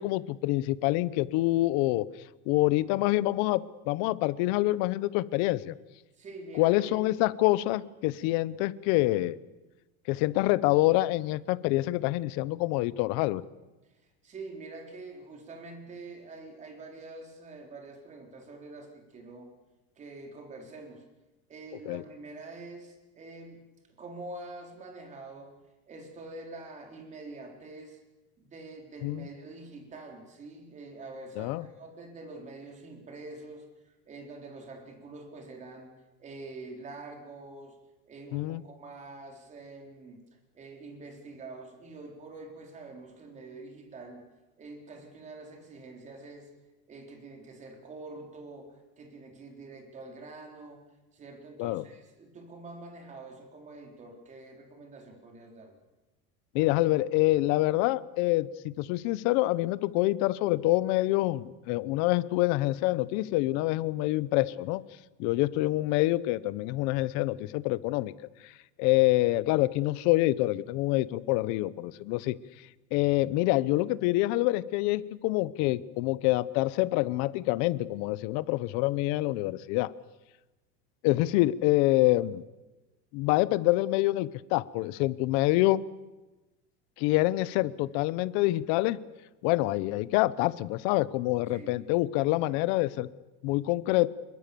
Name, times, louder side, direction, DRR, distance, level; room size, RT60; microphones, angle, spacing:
voice 1, 0.0-2.0 2.5-5.7 6.6-9.4 10.1-13.4 21.9-22.0 29.0-29.3 31.4-31.7 38.3-38.6 51.6-51.8 56.5-64.8 65.2-68.1 68.4-68.5 68.8-72.4 72.9-79.9 81.0-82.4 83.1-85.8 87.0-89.0 89.4-93.1 93.4-94.1, left 18 dB, 60° left, 17 dB, 1.0 m, -26 dB
voice 2, 6.2-7.1 14.2-19.5 20.0-21.0 21.5-23.6 24.0-25.6 25.9-28.0 28.4-35.9 36.2-37.8 38.1-40.2 40.5-44.3 44.6-46.5 46.9-50.8 51.1-55.8 91.5-91.8 92.2-92.6, right 3 dB, 25° right, 3 dB, 3.8 m, -46 dB
26.0 x 22.5 x 7.0 m, 1.1 s
cardioid pair, 165°, 31 cm